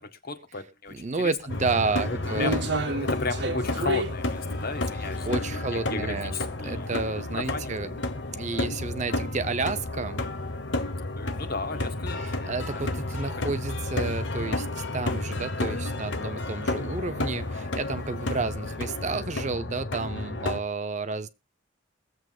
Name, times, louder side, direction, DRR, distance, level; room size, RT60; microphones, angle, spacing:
voice 1, 0.0-1.3 2.1-2.7 3.0-6.9 7.3-7.7 11.2-12.8 13.4-13.5, left 3 dB, 50° left, 1.8 m, -35 dB
voice 2, 0.9-2.7 5.2-7.9 8.3-10.3 12.2-21.3, right 4 dB, 40° right, 0.7 m, -31 dB
sound 1, 1.0-1.1 1.6-6.6 7.0-7.1 7.8-8.0 8.3-8.4 9.3-9.4 9.7-9.9 10.4-10.6 10.9-11.0 13.1-13.2 14.5-14.8 15.2-15.6 16.0-16.2 16.5-16.6 17.6-17.8 18.5-19.2 19.5-19.6, right 1 dB, 65° right, 1.4 m, -31 dB
sound 2, 1.5-20.6, left 2 dB, 70° left, 1.1 m, -31 dB
22.0 x 7.8 x 2.4 m
head